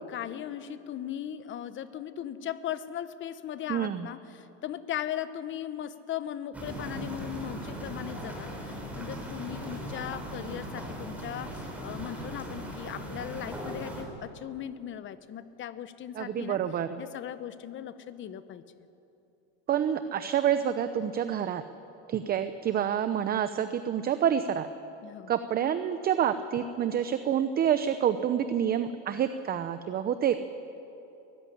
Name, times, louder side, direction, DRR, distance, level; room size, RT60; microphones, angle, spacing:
voice 1, 0.1-16.6 17.0-18.6 25.0-25.3, left 10 dB, 35° left, 13 dB, 1.1 m, -38 dB
voice 2, 3.7-4.1 16.1-17.0 19.7-21.6 22.1-24.7 25.3-30.4, right 9 dB, 25° right, 11 dB, 0.7 m, -28 dB
sound 1, 6.5-14.0, right 1 dB, 5° right, 5.1 m, -38 dB
22.0 x 14.5 x 9.9 m, 2.8 s
supercardioid pair, 125°, 35 cm